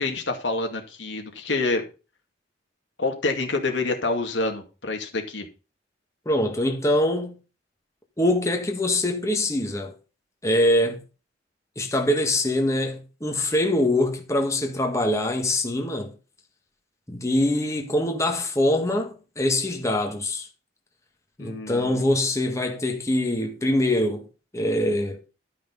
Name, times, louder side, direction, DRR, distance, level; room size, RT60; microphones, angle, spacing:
voice 1, 0.0-1.8 3.0-5.5 21.4-22.0, left 3 dB, 85° left, 2.3 m, -27 dB
voice 2, 6.2-7.3 8.2-9.9 10.4-11.0 11.7-16.1 17.1-20.5 21.4-24.2 24.5-25.2, left 1 dB, 15° left, 1.6 m, -23 dB
12.5 x 5.7 x 5.4 m
head